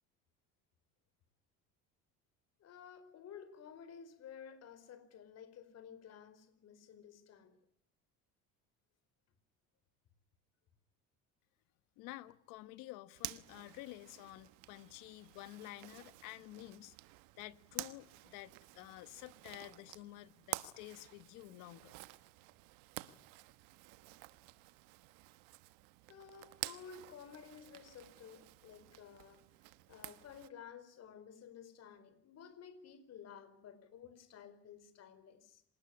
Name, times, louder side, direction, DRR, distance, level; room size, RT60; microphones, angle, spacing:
voice 1, 2.6-7.6 26.1-29.4 29.9-35.6, left 7 dB, 55° left, 4.6 m, -54 dB
voice 2, 12.0-17.0 17.4-21.9, left 17 dB, 80° left, 1.4 m, -51 dB
Zipper (clothing), 13.1-30.5, right 20 dB, 85° right, 1.3 m, -50 dB
26.5 x 19.5 x 9.9 m
cardioid pair, 105°, 31 cm